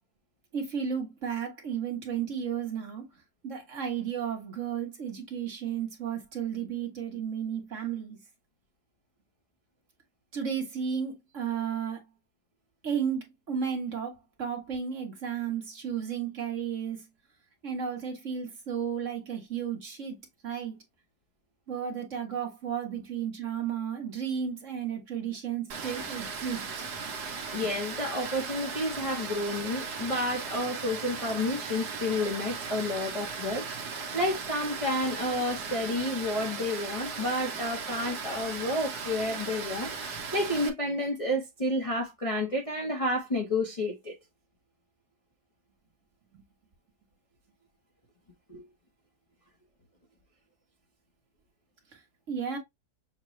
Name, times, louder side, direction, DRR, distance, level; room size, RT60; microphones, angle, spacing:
voice 1, 0.5-3.1 3.4-8.2 10.3-12.0 12.8-17.0 17.6-20.8 21.7-26.6 46.3-46.4 52.3-52.6, right 7 dB, 50° right, 1.5 m, -33 dB
Water, 25.7-40.7, right 5 dB, 75° right, 1.4 m, -37 dB
voice 2, 27.5-44.1 48.5-48.6, left 1 dB, 30° left, 0.8 m, -30 dB
6.5 x 2.2 x 3.0 m
omnidirectional pair, 1.7 m